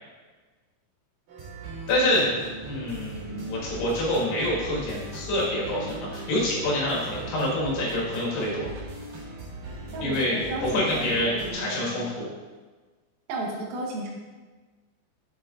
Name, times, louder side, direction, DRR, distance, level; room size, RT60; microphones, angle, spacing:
sound 1, 1.3-11.5, right 2 dB, 55° right, 2.9 m, -39 dB
voice 1, 1.9-2.3 2.7-8.7 10.0-12.3, left 1 dB, 65° left, -5 dB, 3.4 m, -26 dB
voice 2, 9.9-12.0 13.3-14.1, right 2 dB, 75° right, -2 dB, 2.2 m, -33 dB
7.6 x 4.6 x 3.7 m, 1.3 s
omnidirectional pair, 5.8 m